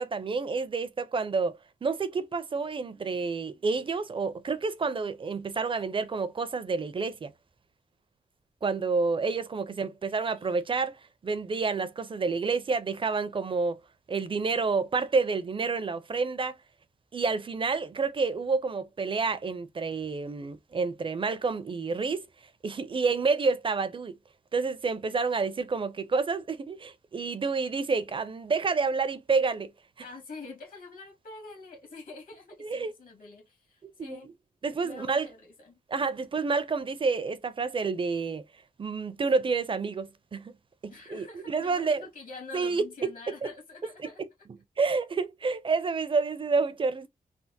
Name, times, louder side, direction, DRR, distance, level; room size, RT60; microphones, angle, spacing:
voice 1, 0.0-7.3 8.6-13.8 14.1-16.6 17.1-22.2 22.6-24.2 24.5-29.7 32.6-32.9 33.8-34.2 34.6-35.3 35.9-38.4 38.8-40.5 40.8-42.0 42.5-42.9 44.8-47.1, right 4 dB, 35° right, 0.4 m, -29 dB
voice 2, 9.7-10.5 30.0-34.3 34.8-36.1 40.9-44.2, left 3 dB, 70° left, 1.5 m, -46 dB
3.4 x 2.1 x 2.5 m
wide cardioid pair, 95°, 15 cm